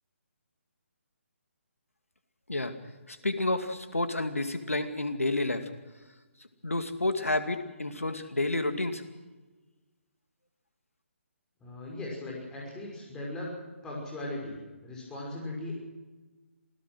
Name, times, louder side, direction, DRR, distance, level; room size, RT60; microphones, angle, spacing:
voice 1, 3.1-5.7 6.6-9.0, left 2 dB, 85° left, 8 dB, 2.3 m, -30 dB
voice 2, 11.6-13.5 13.8-15.7, left 1 dB, 10° left, -3 dB, 5.9 m, -38 dB
27.0 x 17.5 x 6.3 m, 1.2 s
figure-of-eight pair, 145°, 7 cm